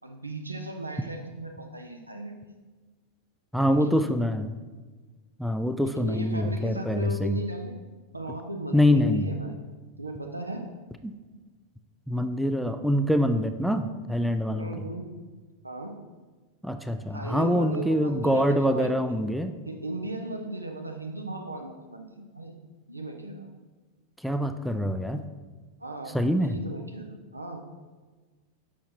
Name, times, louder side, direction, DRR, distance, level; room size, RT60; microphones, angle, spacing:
voice 1, 0.0-2.6 3.7-4.1 6.0-7.7 8.1-9.5 10.0-10.7 14.5-15.0 15.6-16.0 17.1-18.9 19.7-22.5 22.9-23.5 25.8-27.7, right 2 dB, 85° right, 3 dB, 0.7 m, -36 dB
voice 2, 3.5-4.6 5.4-7.4 8.7-9.3 11.0-11.1 12.1-14.9 16.6-19.6 24.2-25.2 26.1-26.6, equal, ahead, 8 dB, 0.3 m, -25 dB
6.4 x 5.7 x 2.9 m, 1.3 s
figure-of-eight pair, 90°, 0 cm